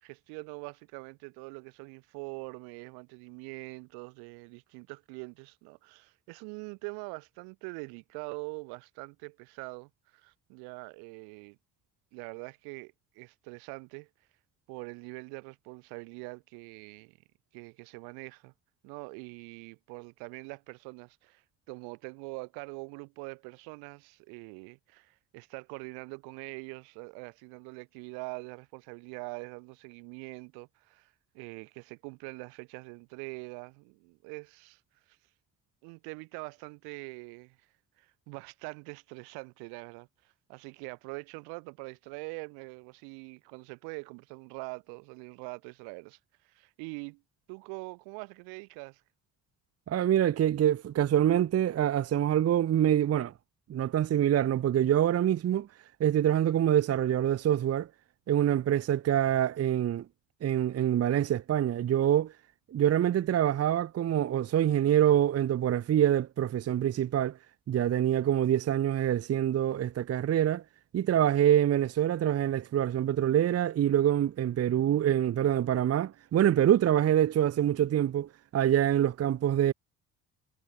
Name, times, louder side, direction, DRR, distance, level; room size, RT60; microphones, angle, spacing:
voice 1, 0.0-11.6 12.1-14.1 14.7-17.2 17.5-18.5 18.8-34.8 35.1-35.2 35.8-37.6 38.0-46.2 46.4-47.2 47.5-49.0, right 35 dB, 90° right, 2.8 m, -44 dB
voice 2, 49.9-53.3 53.7-55.7 56.0-57.9 58.3-60.0 60.4-62.3 62.7-67.4 67.7-70.6 70.9-79.7, right 11 dB, 40° right, 0.7 m, -25 dB
supercardioid pair, 70°, 37 cm